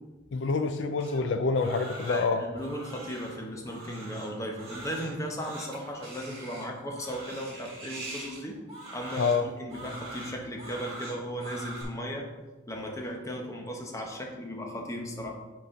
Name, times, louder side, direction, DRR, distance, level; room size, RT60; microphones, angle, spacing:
voice 1, 0.3-2.4 9.2-9.5, left 4 dB, 80° left, 9 dB, 0.4 m, -27 dB
Crying sobbing, 1.0-11.8, right 2 dB, 35° right, 2.3 m, -43 dB
voice 2, 2.1-8.6 8.9-12.3 12.7-15.4, equal, 15° left, 1 dB, 0.9 m, -36 dB
6.2 x 4.2 x 5.1 m, 1.2 s
head